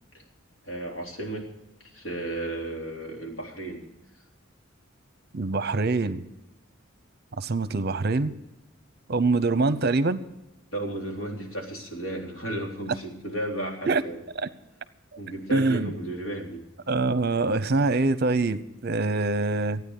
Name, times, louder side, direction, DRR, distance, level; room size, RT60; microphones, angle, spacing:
voice 1, 0.6-1.4 1.9-3.8 10.7-14.2 15.2-16.6, right 1 dB, 85° left, 0 dB, 3.8 m, -33 dB
voice 2, 5.3-6.2 7.4-8.3 9.1-10.2 13.9-14.0 14.4-14.5 15.5-15.9 16.9-19.8, right 3 dB, 50° right, 14 dB, 0.8 m, -24 dB
15.5 x 9.5 x 6.7 m, 0.95 s
head